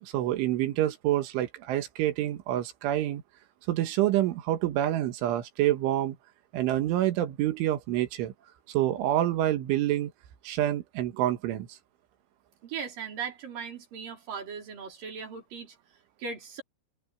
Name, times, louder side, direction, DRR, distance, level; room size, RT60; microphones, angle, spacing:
voice 1, 0.0-3.2 3.7-6.2 6.5-8.3 8.7-10.1 10.4-11.8, right 13 dB, 75° right, 3.9 m, -27 dB
voice 2, 12.6-15.7 16.2-16.6, right 6 dB, 45° right, 6.0 m, -38 dB
omnidirectional pair, 5.8 m